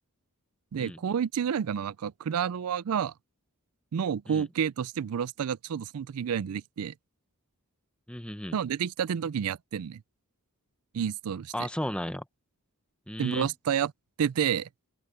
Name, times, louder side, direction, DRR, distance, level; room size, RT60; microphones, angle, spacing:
voice 1, 0.7-3.1 3.9-6.9 8.5-10.0 10.9-11.7 13.2-13.9 14.2-14.7, right 8 dB, 80° right, 0.4 m, -30 dB
voice 2, 8.1-8.6 11.5-12.2 13.1-13.5, left 1 dB, 5° left, 0.7 m, -34 dB
open air
head